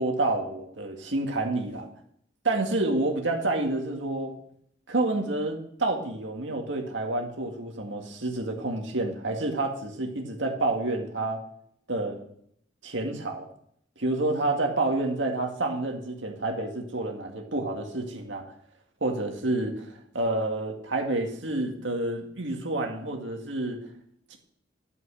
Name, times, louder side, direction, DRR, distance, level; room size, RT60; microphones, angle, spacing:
voice 1, 0.0-1.9 2.4-4.3 4.9-11.4 11.9-12.2 12.8-13.5 14.0-18.4 19.0-23.8 24.3-24.4, right 2 dB, 90° right, 3 dB, 2.0 m, -29 dB
11.0 x 6.0 x 6.3 m, 0.67 s
head